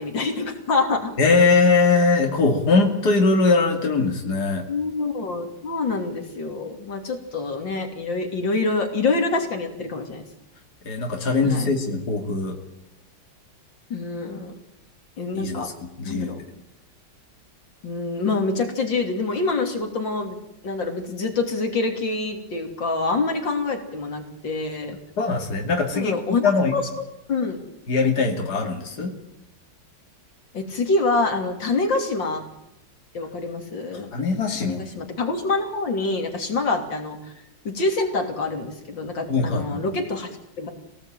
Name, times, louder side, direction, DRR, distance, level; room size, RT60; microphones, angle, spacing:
voice 1, 0.0-1.1 4.7-10.2 11.4-11.7 13.9-14.5 15.2-15.7 16.0-16.4 17.8-20.4 20.6-25.0 25.9-26.4 26.7-26.8 27.3-27.6 30.5-32.4 33.1-34.3 34.6-37.3 37.7-40.3 40.6-40.7, left 3 dB, 85° left, 4 dB, 3.7 m, -26 dB
voice 2, 1.2-4.7 10.8-12.6 15.3-15.7 16.0-16.4 25.2-26.2 26.4-26.7 27.9-29.1 34.1-34.8 39.3-39.8, left 4 dB, 60° left, 2 dB, 3.2 m, -21 dB
26.5 x 19.0 x 9.1 m, 0.84 s
omnidirectional pair, 2.0 m